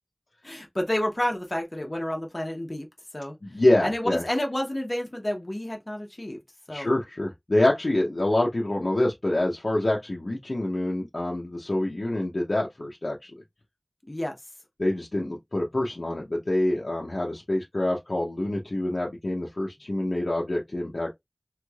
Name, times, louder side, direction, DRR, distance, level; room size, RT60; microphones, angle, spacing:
voice 1, 0.4-2.9 3.1-3.4 3.8-6.4 6.7-7.0 14.1-14.4, left 1 dB, 50° left, 0.9 m, -30 dB
voice 2, 3.4-4.2 6.7-13.3 14.8-21.1, left 1 dB, 85° left, 0.7 m, -26 dB
3.2 x 3.1 x 2.3 m
wide cardioid pair, 45°, 0 cm